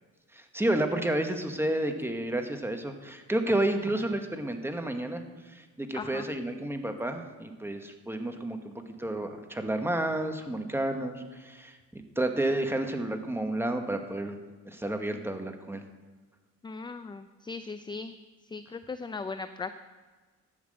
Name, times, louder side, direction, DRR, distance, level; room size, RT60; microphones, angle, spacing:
voice 1, 0.3-14.4 14.7-15.8, right 1 dB, 10° right, 6 dB, 1.2 m, -31 dB
voice 2, 5.9-6.3 16.6-18.2 18.5-19.7, left 4 dB, 15° left, 10 dB, 0.4 m, -38 dB
11.0 x 5.9 x 7.7 m, 1.4 s
cardioid pair, 90°, 30 cm